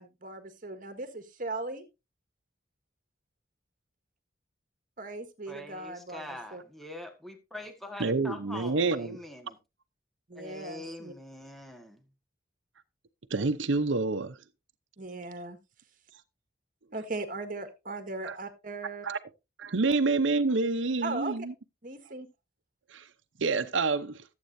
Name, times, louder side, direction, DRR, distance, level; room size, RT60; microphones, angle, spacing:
voice 1, 0.0-1.8 5.0-6.2 6.5-6.6 10.3-11.1 15.0-15.6 16.9-19.1 21.0-21.3 21.8-22.3, right 2 dB, 45° right, 1.7 m, -38 dB
voice 2, 5.5-9.6 10.3-12.0, left 1 dB, ahead, 1.5 m, -43 dB
voice 3, 8.0-9.2 13.3-14.4 18.2-18.4 19.0-19.2 19.6-21.5 22.9-23.1 23.4-24.2, right 3 dB, 80° right, 0.8 m, -28 dB
15.0 x 8.2 x 2.7 m
head